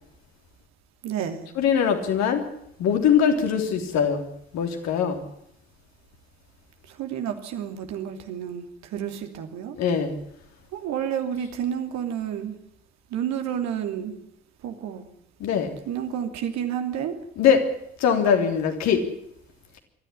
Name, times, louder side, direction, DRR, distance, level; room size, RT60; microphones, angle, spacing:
voice 1, 1.0-1.5 6.9-9.8 10.7-12.6 13.1-14.1 14.6-15.1 15.9-17.2, right 9 dB, 60° right, 6 dB, 2.8 m, -30 dB
voice 2, 1.6-2.4 2.8-4.3 4.5-5.2 9.8-10.2 15.4-15.7 17.4-17.6 18.0-19.0, left 7 dB, 60° left, 4 dB, 3.5 m, -21 dB
22.0 x 14.0 x 10.0 m, 0.75 s
figure-of-eight pair, 45°, 31 cm